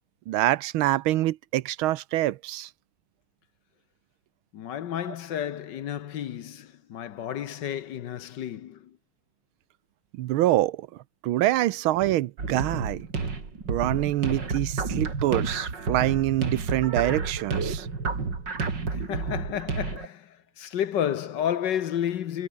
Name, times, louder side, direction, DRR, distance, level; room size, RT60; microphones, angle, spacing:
voice 1, 0.3-2.7 10.2-10.9 11.2-13.1 13.7-17.9, right 15 dB, 80° right, 1.5 m, -25 dB
voice 2, 4.5-8.9 18.9-22.5, left 10 dB, 60° left, 1.5 m, -31 dB
sound 1, 12.4-20.1, right 4 dB, 55° right, 4.0 m, -30 dB
omnidirectional pair, 2.3 m